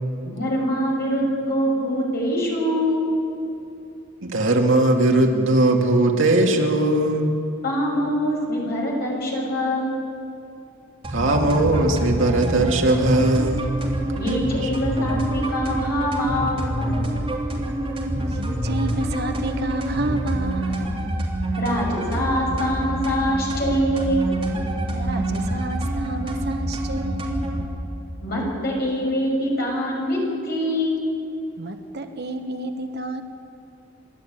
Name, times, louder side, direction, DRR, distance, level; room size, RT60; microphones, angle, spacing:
voice 1, 0.2-3.0 7.6-10.0 14.1-16.9 21.6-24.3 28.2-31.0, equal, 45° left, -2 dB, 6.2 m, -24 dB
voice 2, 4.2-7.3 11.1-13.6, right 2 dB, 65° right, 1 dB, 2.3 m, -19 dB
sound 1, 11.0-27.7, right 1 dB, 25° right, 3.0 m, -26 dB
voice 3, 18.3-21.1 24.9-27.4 31.6-33.2, right 2 dB, 50° right, 6 dB, 1.2 m, -30 dB
28.0 x 12.0 x 9.0 m, 2.7 s
head